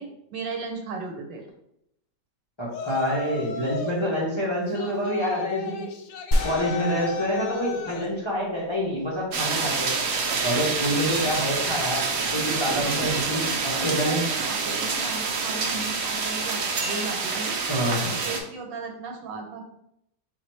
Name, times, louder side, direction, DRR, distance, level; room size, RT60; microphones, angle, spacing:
voice 1, 0.0-1.4 12.8-12.9 13.3-17.9 18.2-19.7, right 3 dB, 80° right, 2 dB, 1.4 m, -36 dB
voice 2, 2.6-5.9 6.4-9.9 10.4-14.2 17.7-18.2, equal, 40° left, -5 dB, 0.4 m, -27 dB
Yell, 2.7-4.0 4.7-8.1, left 5 dB, 90° left, 1.3 m, -35 dB
sound 1, 6.3-8.6, equal, 60° left, 0.8 m, -29 dB
sound 2, 9.3-18.4, right 4 dB, 65° right, 0.9 m, -27 dB
4.1 x 2.4 x 4.3 m, 0.78 s
omnidirectional pair, 1.9 m